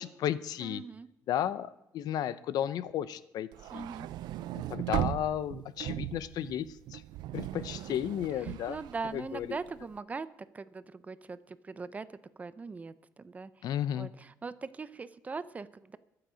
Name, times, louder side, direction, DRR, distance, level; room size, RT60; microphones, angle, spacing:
voice 1, 0.0-0.8 1.3-3.5 3.7-3.9 4.7-7.0 7.3-8.8 9.1-9.5 13.6-14.1, left 10 dB, 65° left, 16 dB, 0.6 m, -33 dB
voice 2, 0.6-1.1 3.7-4.1 8.4-10.3 10.5-12.1 12.4-13.7 13.9-16.0, right 4 dB, 20° right, 15 dB, 0.5 m, -41 dB
sound 1, 3.5-9.8, right 13 dB, 80° right, 0.5 m, -38 dB
23.0 x 7.8 x 5.0 m, 0.90 s
cardioid pair, 155°, 7 cm